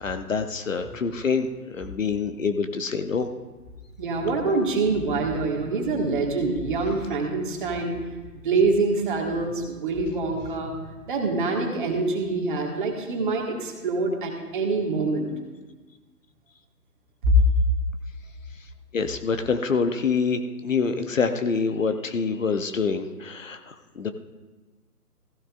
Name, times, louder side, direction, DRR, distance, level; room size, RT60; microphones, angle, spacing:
voice 1, 0.0-3.3 18.9-24.1, left 5 dB, 50° left, 8 dB, 0.8 m, -26 dB
voice 2, 4.0-7.9 8.4-10.7 11.1-15.3 17.2-17.4, right 2 dB, 30° right, 1 dB, 1.8 m, -25 dB
15.5 x 15.0 x 2.5 m, 1.2 s
figure-of-eight pair, 145°, 48 cm